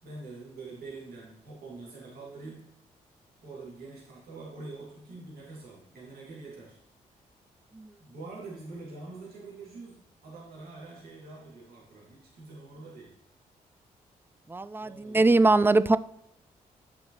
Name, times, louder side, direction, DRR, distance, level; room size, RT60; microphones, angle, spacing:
voice 1, 0.0-2.7 3.4-6.8 8.0-13.1 14.8-15.4, right 3 dB, 70° right, 2.6 m, -45 dB
voice 2, 14.5-16.0, right 2 dB, 15° right, 0.4 m, -22 dB
9.6 x 6.0 x 3.2 m
supercardioid pair, 50°, 16 cm